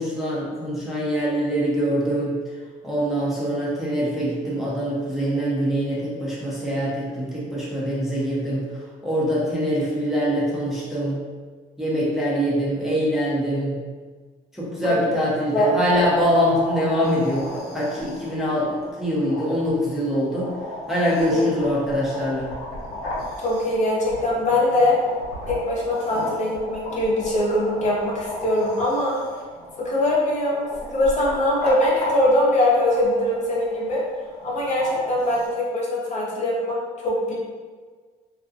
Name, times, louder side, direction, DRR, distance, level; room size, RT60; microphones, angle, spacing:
voice 1, 0.0-2.3 2.8-8.7 9.0-11.2 11.8-13.7 14.5-20.5 20.9-22.5, equal, ahead, -7 dB, 0.6 m, -24 dB
sound 1, 15.9-35.5, left 1 dB, 85° left, 0.8 m, -35 dB
voice 2, 23.4-25.0 25.5-29.2 29.8-34.0 34.4-37.3, left 1 dB, 45° left, -4 dB, 0.7 m, -22 dB
2.4 x 2.2 x 2.5 m, 1.5 s
cardioid pair, 110°, 17 cm